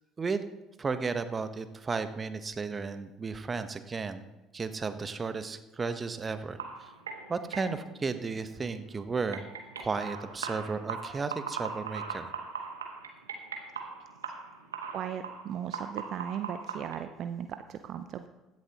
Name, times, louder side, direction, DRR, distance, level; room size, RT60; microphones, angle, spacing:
voice 1, 0.8-4.2 4.5-6.9 7.3-9.5 9.8-12.3, right 4 dB, 30° right, 10 dB, 1.0 m, -34 dB
sound 1, 6.6-17.0, right 5 dB, 85° right, 1.2 m, -41 dB
voice 2, 14.9-18.3, right 9 dB, 55° right, 9 dB, 0.5 m, -37 dB
16.0 x 10.5 x 3.0 m, 1.1 s
hypercardioid pair, 60°, 0 cm